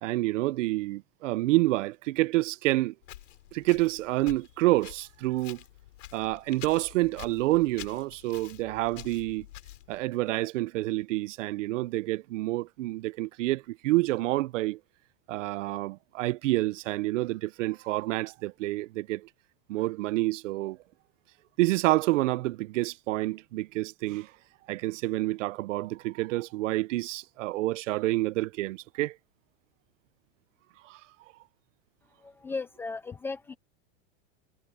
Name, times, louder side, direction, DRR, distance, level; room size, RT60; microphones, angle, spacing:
voice 1, 0.0-2.9 3.5-5.6 6.1-9.5 9.9-14.8 15.3-19.3 19.7-20.8 21.6-24.3 24.7-29.2 30.8-31.0, right 18 dB, 80° right, 0.7 m, -28 dB
Walk footsteps, 3.0-10.0, left 15 dB, 85° left, 5.8 m, -48 dB
voice 2, 32.2-33.5, left 4 dB, 5° left, 0.3 m, -36 dB
supercardioid pair, 165°, 37 cm